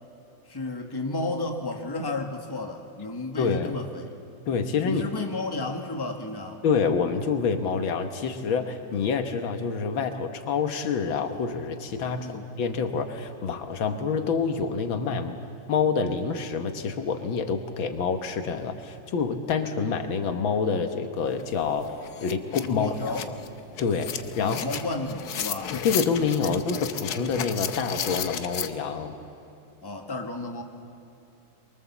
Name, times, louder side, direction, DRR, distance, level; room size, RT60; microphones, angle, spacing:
voice 1, 0.5-4.0 4.8-6.6 12.2-12.4 22.7-23.3 24.4-25.8 26.4-26.5 29.8-30.6, left 2 dB, 15° left, 2 dB, 1.4 m, -32 dB
voice 2, 3.4-3.7 4.5-5.1 6.6-15.4 15.7-21.9 22.2-23.4 23.8-24.1 24.4-24.6 25.7-29.2, left 5 dB, 85° left, 6 dB, 2.1 m, -27 dB
sound 1, 21.4-21.5 21.8-28.7, left 8 dB, 60° left, 1.3 m, -34 dB
23.5 x 23.5 x 7.3 m, 2.9 s
omnidirectional pair, 2.1 m